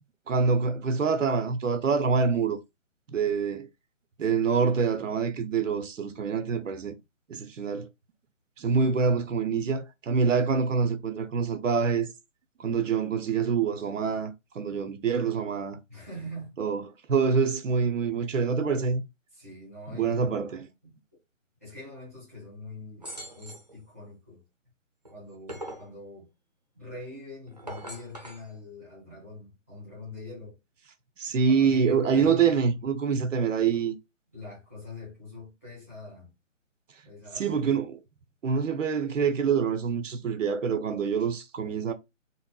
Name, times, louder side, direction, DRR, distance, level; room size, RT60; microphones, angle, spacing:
voice 1, 0.3-2.6 3.1-3.7 4.2-6.9 7.3-7.9 8.6-12.1 12.6-15.8 16.6-16.8 17.1-19.0 19.9-20.7 31.2-34.0 37.4-38.0 38.4-41.9, right 5 dB, 70° right, 0.7 m, -26 dB
voice 2, 15.9-16.6 19.3-20.4 20.8-21.2 21.6-24.4 25.1-26.3 26.7-30.6 31.4-32.8 34.3-36.3 37.0-37.8, left 2 dB, 10° left, 0.8 m, -44 dB
sound 1, 23.0-23.7 25.1-25.9 27.5-28.5, right 1 dB, 35° right, 0.5 m, -41 dB
4.0 x 2.0 x 2.2 m
hypercardioid pair, 180°, 39 cm